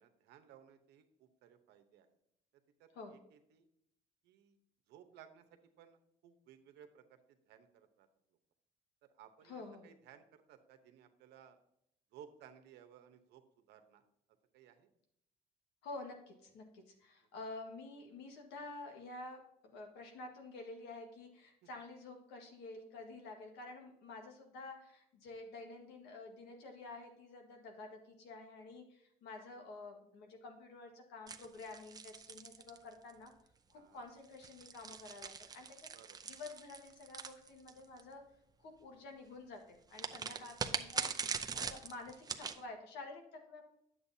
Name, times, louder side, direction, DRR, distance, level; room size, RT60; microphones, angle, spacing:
voice 1, 0.0-2.1 2.8-3.6 4.2-4.6 4.9-5.4 5.8-7.2 7.5-8.1 9.2-11.6 12.1-13.4 13.7-14.0 14.5-14.9 33.7-34.0 35.9-36.3 40.2-40.5, right 9 dB, 80° right, 8 dB, 1.0 m, -60 dB
voice 2, 9.4-9.8 15.8-33.3 33.7-35.9 36.2-38.2 38.6-43.6, left 3 dB, 85° left, 3 dB, 1.6 m, -50 dB
sound 1, 31.3-33.3 34.2-38.0 39.9-42.6, right 5 dB, 20° right, 0.6 m, -42 dB
9.8 x 7.7 x 2.8 m, 0.76 s
cardioid pair, 110°, 17 cm